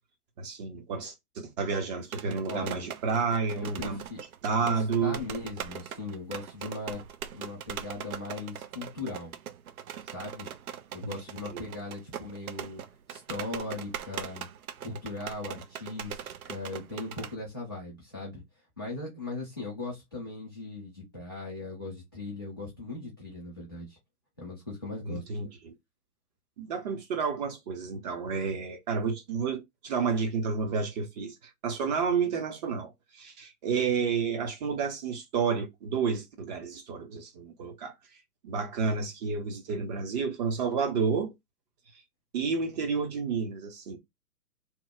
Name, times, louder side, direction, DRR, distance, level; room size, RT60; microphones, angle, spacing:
voice 1, 0.4-4.0 4.4-5.2 11.0-11.1 11.5-11.6 25.1-25.7 26.6-31.3 31.6-37.9 38.4-41.3 42.3-44.0, right 5 dB, 30° right, 0.6 m, -30 dB
sound 1, 2.0-17.3, right 9 dB, 70° right, 0.6 m, -41 dB
voice 2, 2.5-2.9 3.5-4.2 4.5-7.0 7.3-9.3 10.0-10.5 10.9-12.8 13.1-14.5 14.8-18.4 18.8-24.0 24.4-25.2, left 2 dB, 20° left, 0.3 m, -39 dB
2.9 x 2.0 x 3.4 m
figure-of-eight pair, 125°, 45 cm